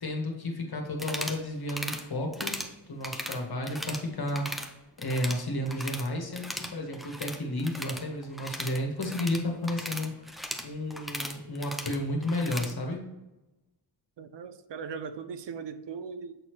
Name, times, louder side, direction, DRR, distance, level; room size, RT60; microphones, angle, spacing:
voice 1, 0.0-2.6 2.9-4.5 5.0-10.3 10.6-13.0, left 1 dB, 50° left, 1 dB, 1.7 m, -32 dB
sound 1, 0.9-1.4 1.7-2.0 2.3-2.7 3.0-4.0 4.3-4.7 5.0-6.1 6.3-12.7, equal, ahead, 0.7 m, -37 dB
voice 2, 14.2-16.4, right 6 dB, 65° right, 11 dB, 0.7 m, -39 dB
7.6 x 4.2 x 3.2 m, 1.0 s
cardioid pair, 70°, 47 cm